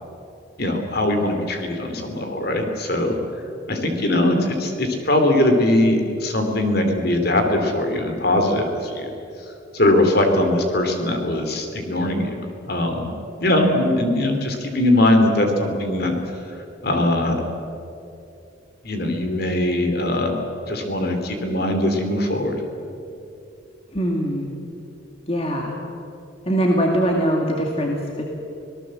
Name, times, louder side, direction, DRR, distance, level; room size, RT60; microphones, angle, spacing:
voice 1, 0.6-3.1 3.7-9.1 9.7-12.3 12.6-13.1 13.4-16.1 16.8-17.4 18.8-20.3 20.7-22.5, left 1 dB, 50° left, 5 dB, 3.1 m, -21 dB
voice 2, 23.9-24.5 25.3-25.7 26.5-28.2, equal, 30° left, 0 dB, 2.1 m, -22 dB
25.5 x 18.0 x 7.7 m, 2.7 s
head